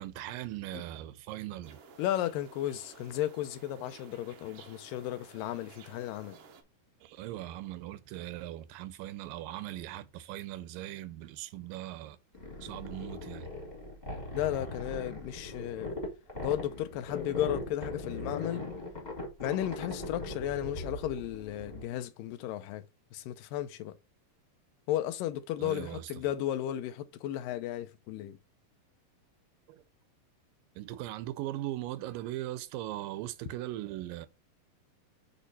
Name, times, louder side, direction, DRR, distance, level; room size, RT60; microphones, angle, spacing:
voice 1, 0.0-1.8 7.0-12.2 12.6-13.5 25.6-26.1 29.7-29.8 30.8-34.3, right 14 dB, 90° right, 2.3 m, -39 dB
sound 1, 1.6-6.6, right 5 dB, 70° right, 1.4 m, -54 dB
voice 2, 2.0-6.4 14.3-16.0 16.4-18.7 19.4-22.8 23.1-24.0 24.9-28.4, left 12 dB, 85° left, 2.4 m, -34 dB
sound 2, 12.3-21.9, left 2 dB, 15° left, 1.6 m, -40 dB
8.3 x 3.2 x 4.1 m
omnidirectional pair, 3.9 m